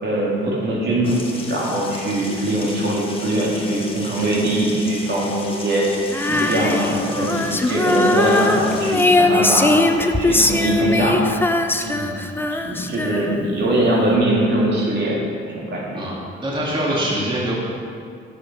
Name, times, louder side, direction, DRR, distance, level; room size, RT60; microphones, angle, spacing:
voice 1, 0.0-5.9 6.3-9.8 10.2-11.3 12.6-16.0, right 1 dB, 60° right, -4 dB, 2.4 m, -21 dB
sound 1, 1.0-9.1, left 2 dB, 25° left, 1.4 m, -35 dB
Female singing, 6.1-13.6, left 2 dB, 10° left, 0.5 m, -20 dB
voice 2, 11.8-12.2 15.9-16.2 16.4-17.5, right 1 dB, 25° right, -5 dB, 2.1 m, -24 dB
7.7 x 6.6 x 5.3 m, 2.2 s
cardioid pair, 90°, 20 cm